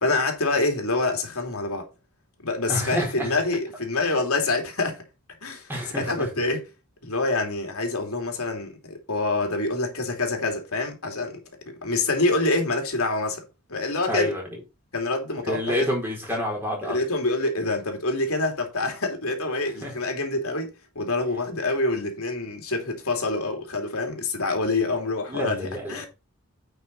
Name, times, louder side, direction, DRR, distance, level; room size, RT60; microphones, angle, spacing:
voice 1, 0.0-1.9 2.4-5.0 5.4-6.6 7.0-13.4 13.7-14.3 14.9-15.9 16.8-20.7 20.9-25.6 25.9-26.1, left 2 dB, 85° left, 2.9 m, -26 dB
voice 2, 2.7-3.3 4.0-4.2 5.7-6.3 14.1-14.6 15.4-17.0 19.8-19.9 25.3-26.1, equal, 10° right, 4.3 m, -28 dB
9.3 x 6.0 x 4.2 m
head